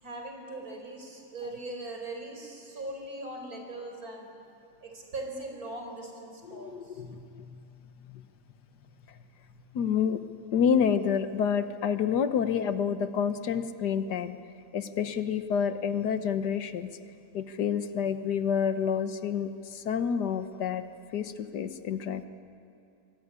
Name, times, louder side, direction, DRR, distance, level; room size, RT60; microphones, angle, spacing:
voice 1, 0.0-4.3 4.8-7.0, right 2 dB, 65° right, 2 dB, 4.9 m, -40 dB
voice 2, 6.5-7.6 8.1-8.2 9.7-10.2 10.5-14.4 14.7-16.9 17.3-20.8 21.1-22.2, left 7 dB, 85° left, 10 dB, 1.7 m, -28 dB
23.5 x 23.5 x 9.8 m, 2.7 s
omnidirectional pair, 1.7 m